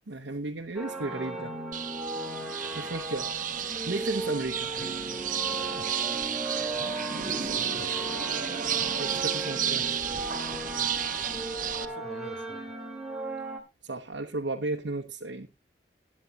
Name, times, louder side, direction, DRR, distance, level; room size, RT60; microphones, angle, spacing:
voice 1, 0.1-1.5 2.7-3.3 3.6-4.7 9.0-9.9 13.8-15.5, right 2 dB, 80° right, 0.9 m, -34 dB
sound 1, 0.8-13.6, right 2 dB, ahead, 2.1 m, -36 dB
sound 2, 1.7-11.8, right 9 dB, 45° right, 0.8 m, -32 dB
sound 3, 4.8-5.9 6.8-7.9 8.8-9.9, left 2 dB, 45° left, 1.4 m, -48 dB
voice 2, 7.3-8.4 11.8-12.6, right 1 dB, 85° left, 2.4 m, -47 dB
16.5 x 9.9 x 2.8 m
head